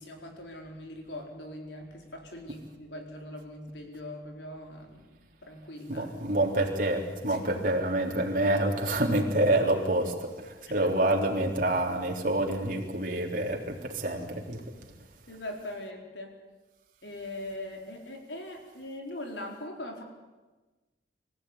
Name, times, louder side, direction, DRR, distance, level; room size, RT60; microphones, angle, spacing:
voice 1, 0.0-6.1 7.2-7.6 10.8-10.9 15.3-16.3 17.0-20.0, left 1 dB, 85° left, 3 dB, 4.5 m, -41 dB
voice 2, 5.9-10.3 10.7-14.6, right 1 dB, 50° right, 1 dB, 3.6 m, -27 dB
25.5 x 15.5 x 9.9 m, 1.2 s
head